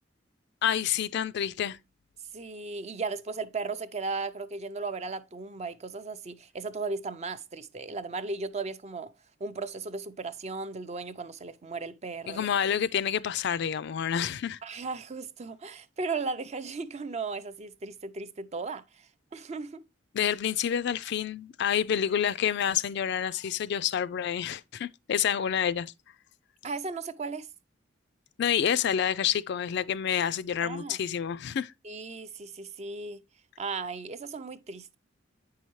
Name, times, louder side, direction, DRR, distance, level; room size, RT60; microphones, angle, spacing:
voice 1, 0.6-1.8 12.3-14.6 20.1-25.9 28.4-31.7, left 8 dB, 60° left, 0.4 m, -28 dB
voice 2, 2.3-9.1 9.4-12.5 14.6-19.8 26.6-27.5 30.6-31.0 31.8-33.2 33.6-35.0, right 4 dB, 35° right, 0.5 m, -36 dB
8.5 x 5.6 x 3.0 m
head